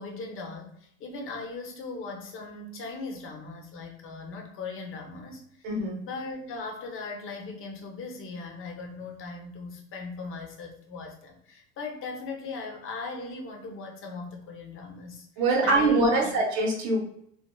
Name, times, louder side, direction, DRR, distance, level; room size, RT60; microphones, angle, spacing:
voice 1, 0.0-5.5 6.0-15.3 15.6-16.3, left 3 dB, 40° left, 2 dB, 0.8 m, -38 dB
voice 2, 5.6-6.0 15.4-17.0, right 2 dB, 60° right, -1 dB, 1.2 m, -23 dB
2.9 x 2.4 x 2.2 m, 0.71 s
supercardioid pair, 100°, 31 cm